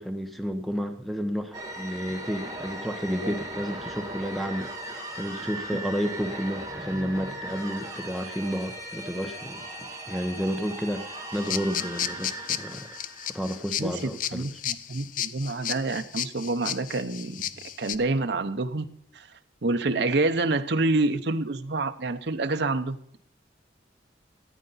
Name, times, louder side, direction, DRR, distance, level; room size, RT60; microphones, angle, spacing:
voice 1, 0.0-12.9 13.3-14.5, equal, ahead, 7 dB, 0.8 m, -31 dB
sound 1, 1.5-14.0, right 1 dB, 20° right, 1.8 m, -38 dB
sound 2, 11.3-17.9, left 10 dB, 45° left, 0.5 m, -33 dB
voice 2, 13.8-17.4 17.8-18.9 19.1-19.3 19.6-23.2, right 2 dB, 60° right, 8 dB, 0.7 m, -27 dB
15.0 x 9.0 x 4.0 m, 0.70 s
head